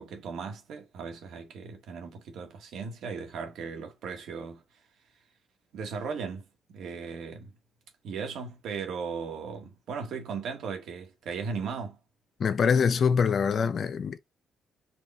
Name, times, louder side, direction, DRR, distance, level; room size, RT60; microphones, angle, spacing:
voice 1, 0.0-4.6 5.7-7.5 8.0-12.0, right 5 dB, 75° right, 1.5 m, -37 dB
voice 2, 12.4-14.2, left 6 dB, 55° left, 0.7 m, -24 dB
4.5 x 2.5 x 3.5 m
cardioid pair, 90°, 0 cm